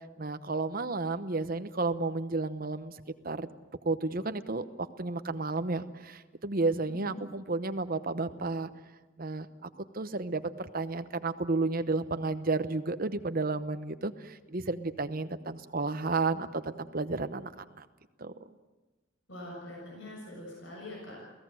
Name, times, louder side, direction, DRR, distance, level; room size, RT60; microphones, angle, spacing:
voice 1, 0.2-2.9 3.2-3.5 3.8-8.7 9.2-9.5 9.9-17.9 18.2-18.3, right 3 dB, 45° right, 11 dB, 1.0 m, -32 dB
voice 2, 6.9-7.3 19.3-21.2, left 1 dB, 65° left, -2 dB, 7.2 m, -44 dB
28.0 x 17.5 x 7.8 m, 1.2 s
head